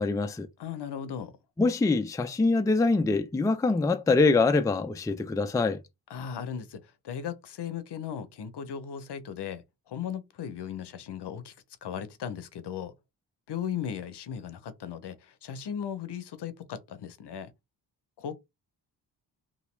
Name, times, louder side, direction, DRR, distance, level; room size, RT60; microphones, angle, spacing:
voice 1, 0.0-0.5 1.6-5.8, left 3 dB, 10° left, 0.4 m, -24 dB
voice 2, 0.6-1.3 6.1-11.5 11.8-12.9 13.5-17.5 18.2-18.3, left 8 dB, 60° left, 0.7 m, -37 dB
2.9 x 2.5 x 3.2 m
supercardioid pair, 55°, 46 cm